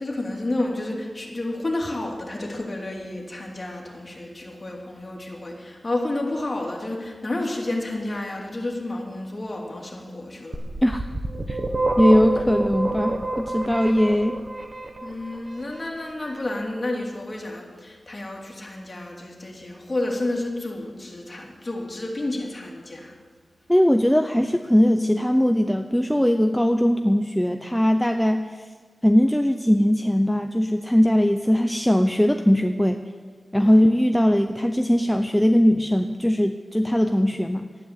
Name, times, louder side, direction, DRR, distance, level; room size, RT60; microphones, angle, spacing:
voice 1, 0.0-10.6 15.0-23.1 33.6-33.7, left 2 dB, 35° left, -1 dB, 3.2 m, -30 dB
sound 1, 10.5-15.4, right 2 dB, 35° right, 1.6 m, -27 dB
voice 2, 12.0-14.4 23.7-28.6 29.0-33.0 33.5-37.7, equal, 5° left, 6 dB, 0.6 m, -20 dB
12.5 x 10.0 x 8.2 m, 1.5 s
wide cardioid pair, 75°, 0 cm